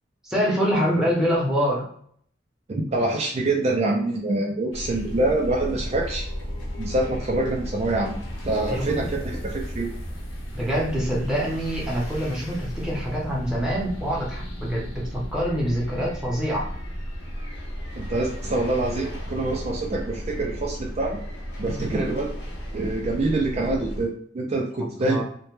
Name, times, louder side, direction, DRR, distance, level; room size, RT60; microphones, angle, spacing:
voice 1, 0.2-1.9 8.7-9.0 10.5-16.7 25.0-25.2, equal, 5° right, -5 dB, 0.7 m, -25 dB
voice 2, 2.7-6.3 6.8-8.2 8.4-9.9 18.0-21.2 21.6-22.3 22.7-25.2, right 2 dB, 35° right, 0 dB, 0.4 m, -25 dB
sound 1, 4.7-24.1, equal, 85° left, 0.6 m, -34 dB
2.1 x 2.1 x 3.0 m, 0.62 s
head